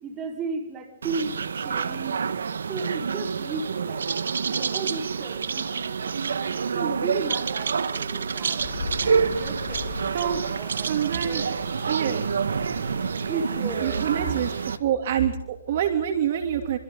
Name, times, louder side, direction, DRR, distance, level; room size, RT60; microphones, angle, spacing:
voice 1, 0.0-2.2 2.7-4.0 4.5-8.6 9.0-11.5 13.3-14.3, right 4 dB, 15° right, 3 dB, 4.8 m, -35 dB
sound 1, 1.0-14.8, right 6 dB, 80° right, 1.7 m, -28 dB
Stream, 8.6-14.8, left 4 dB, 65° left, 3.2 m, -39 dB
voice 2, 10.9-11.4 11.9-12.3 13.8-14.5 14.8-16.8, right 9 dB, 45° right, 5 dB, 3.1 m, -26 dB
28.0 x 26.0 x 4.0 m, 0.82 s
hypercardioid pair, 155°, 0 cm